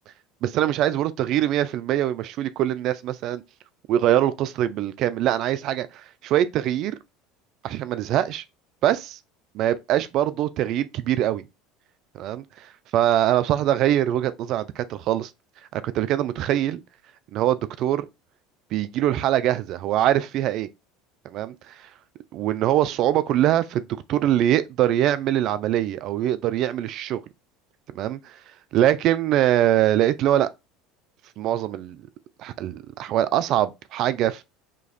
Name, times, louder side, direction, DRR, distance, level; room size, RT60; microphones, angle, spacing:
voice 1, 0.4-3.4 3.9-5.9 6.2-7.0 7.6-8.4 8.8-9.2 9.5-11.4 12.1-12.4 12.9-15.3 15.7-16.8 17.3-18.1 18.7-20.7 21.2-21.7 22.3-23.8 24.1-27.2 28.0-28.2 28.7-30.5 31.4-32.0 32.4-34.4, right 12 dB, 55° right, 0.3 m, -23 dB
5.1 x 2.4 x 2.4 m
hypercardioid pair, 75°, 0 cm